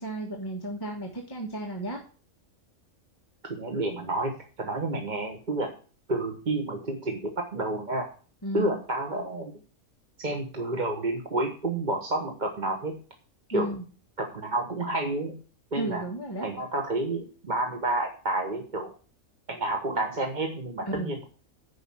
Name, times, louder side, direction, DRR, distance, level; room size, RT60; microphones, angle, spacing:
voice 1, 0.0-2.0 8.4-8.7 13.5-13.8 15.7-16.5 20.8-21.2, right 1 dB, 15° left, -1 dB, 1.6 m, -33 dB
voice 2, 3.5-5.7 6.1-8.1 8.5-9.5 10.2-13.0 13.5-13.7 14.2-15.4 15.7-16.0 16.4-18.9 19.5-21.3, right 2 dB, 35° right, 3 dB, 1.2 m, -30 dB
10.5 x 4.9 x 7.2 m, 0.39 s
omnidirectional pair, 1.4 m